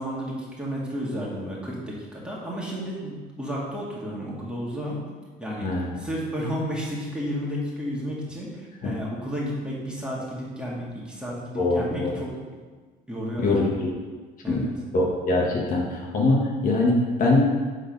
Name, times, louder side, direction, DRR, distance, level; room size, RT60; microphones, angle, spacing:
voice 1, 0.0-5.0 5.4-5.7 6.0-12.3 13.1-13.8 14.4-14.7, equal, 5° right, -5 dB, 2.0 m, -32 dB
voice 2, 5.6-6.0 8.8-8.9 11.6-12.1 13.4-13.9 14.5-14.6 14.9-17.4, left 2 dB, 55° left, -2 dB, 1.5 m, -23 dB
8.2 x 4.0 x 5.3 m, 1.4 s
cardioid pair, 110°, 17 cm